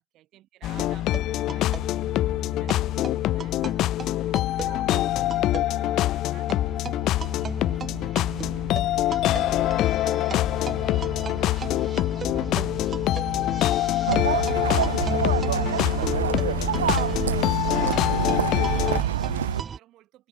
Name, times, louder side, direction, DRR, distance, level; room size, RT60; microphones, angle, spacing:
voice 1, 0.1-5.0 5.6-8.9 9.4-20.3, right 15 dB, 40° right, 7.5 m, -55 dB
sound 1, 0.6-19.0, left 15 dB, 40° left, 1.0 m, -25 dB
sound 2, 0.7-19.8, right 6 dB, 20° right, 1.5 m, -36 dB
sound 3, 14.1-19.6, right 9 dB, 85° right, 0.4 m, -27 dB
hypercardioid pair, 115°, 0 cm